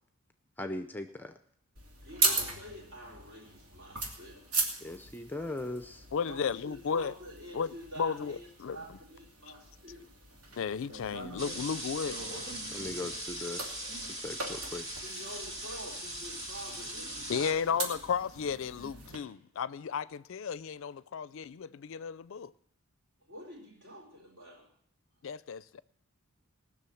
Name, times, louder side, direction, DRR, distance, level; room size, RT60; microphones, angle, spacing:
voice 1, 0.6-1.3 4.8-6.0 12.7-13.6 14.2-14.8, left 2 dB, 10° left, 0.5 m, -39 dB
sound 1, 1.8-19.2, right 3 dB, 85° right, 2.6 m, -39 dB
voice 2, 2.0-4.5 6.2-10.1 15.0-18.0 23.2-24.7, equal, 55° right, 4.2 m, -47 dB
voice 3, 6.1-7.1 7.5-8.8 10.5-12.2 13.1-13.2 17.3-22.5 25.2-25.8, left 6 dB, 65° left, 0.4 m, -34 dB
sound 2, 11.4-17.5, right 1 dB, 30° right, 2.7 m, -40 dB
19.0 x 6.4 x 7.0 m
head